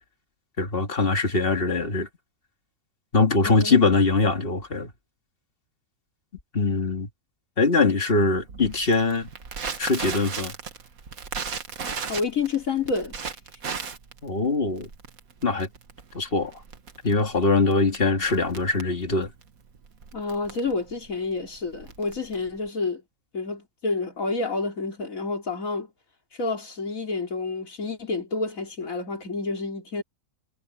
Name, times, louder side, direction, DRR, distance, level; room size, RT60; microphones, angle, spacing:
voice 1, 0.6-2.1 3.1-4.9 6.5-7.1 7.6-9.3 9.8-10.5 14.2-14.9 15.4-15.7 16.1-16.6 17.0-19.3, left 3 dB, 40° left, 2.2 m, -22 dB
voice 2, 3.4-3.8 12.1-13.1 20.1-23.0 23.3-25.9 26.4-30.0, left 4 dB, 70° left, 3.6 m, -29 dB
Crackle, 8.5-22.7, right 5 dB, 80° right, 2.0 m, -37 dB
omnidirectional pair, 1.5 m